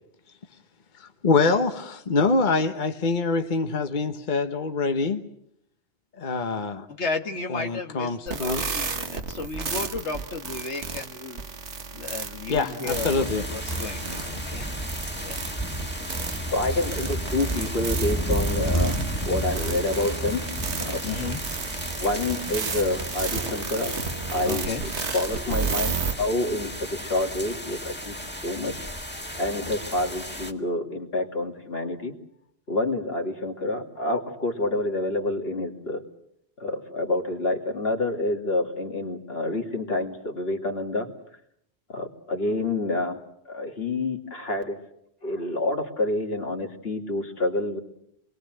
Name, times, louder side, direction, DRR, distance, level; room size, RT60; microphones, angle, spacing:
voice 1, 1.0-5.2 6.2-6.9 7.5-8.6 12.5-13.5, left 4 dB, 45° left, 1.2 m, -25 dB
voice 2, 6.9-11.4 11.9-14.7 15.2-15.4 21.0-21.4 24.4-24.8, left 4 dB, 90° left, 1.8 m, -33 dB
sound 1, 8.3-26.1, right 5 dB, 85° right, 1.7 m, -33 dB
sound 2, 12.9-30.5, right 1 dB, 10° left, 1.7 m, -32 dB
voice 3, 16.5-20.4 20.8-21.0 22.0-23.9 24.3-25.9 26.2-28.2 28.4-28.9 29.4-32.1 32.7-36.0 36.6-41.1 41.9-43.2 43.5-44.8 45.2-47.8, left 2 dB, 60° left, 2.7 m, -28 dB
27.5 x 21.5 x 7.8 m
omnidirectional pair, 1.1 m